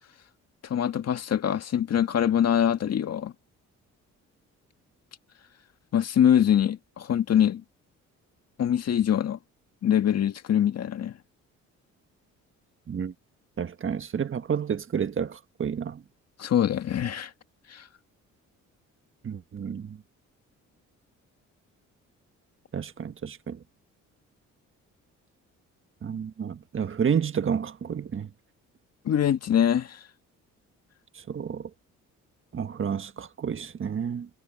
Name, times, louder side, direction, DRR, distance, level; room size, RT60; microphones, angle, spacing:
voice 1, 0.6-3.3 5.9-7.6 8.6-9.4 9.8-11.1 16.4-17.3 17.7-17.8 29.1-30.0, left 9 dB, 55° left, 1.8 m, -24 dB
voice 2, 13.6-16.0 19.2-20.0 22.7-23.6 26.0-28.3 31.1-31.7 32.5-34.3, right 7 dB, 40° right, 1.5 m, -30 dB
cardioid pair, 90°, 30 cm